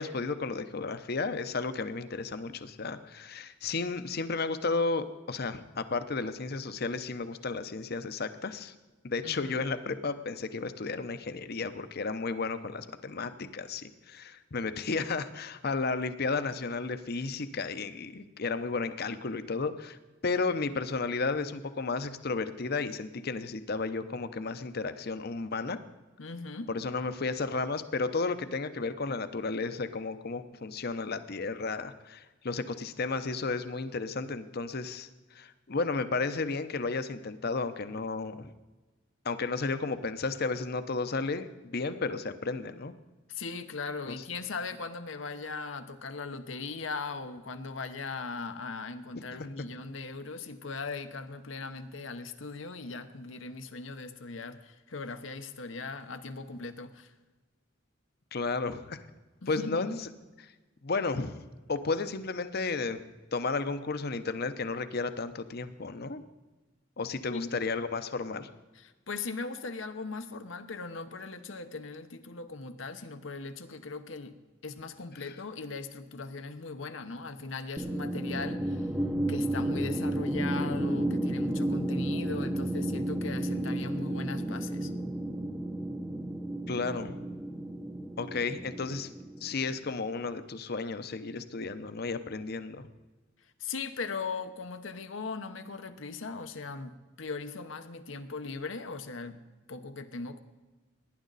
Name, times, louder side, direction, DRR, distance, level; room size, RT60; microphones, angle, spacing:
voice 1, 0.0-8.7 9.0-20.0 20.2-25.8 26.7-35.1 35.3-38.5 39.2-42.9 44.1-44.2 49.3-49.5 58.3-59.0 59.5-60.0 60.4-60.5 60.8-63.0 63.3-66.2 67.0-68.5 86.7-87.2 88.2-89.1 89.4-92.9, left 4 dB, 55° left, 11 dB, 0.8 m, -33 dB
voice 2, 9.2-9.6 26.2-26.7 43.3-57.1 59.4-60.0 67.3-67.5 68.7-74.4 74.6-78.9 79.3-84.9 93.6-99.4 99.7-100.4, left 4 dB, 85° left, 8 dB, 1.0 m, -39 dB
sound 1, 77.8-89.9, right 1 dB, 10° right, 0.7 m, -32 dB
18.0 x 10.5 x 4.1 m, 1.2 s
head